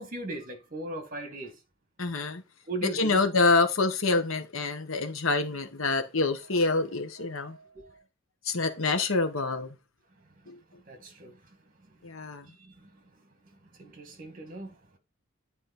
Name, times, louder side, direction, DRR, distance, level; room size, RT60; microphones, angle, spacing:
voice 1, 0.0-1.6 2.7-3.2 7.2-8.0 10.8-11.4 11.8-12.0 12.6-13.0 13.6-14.8, right 2 dB, 40° right, 1.9 m, -39 dB
voice 2, 2.0-2.4 2.8-7.6 8.4-9.7 10.5-10.6 12.0-12.5, left 3 dB, 75° left, 1.4 m, -26 dB
9.8 x 4.3 x 4.3 m
head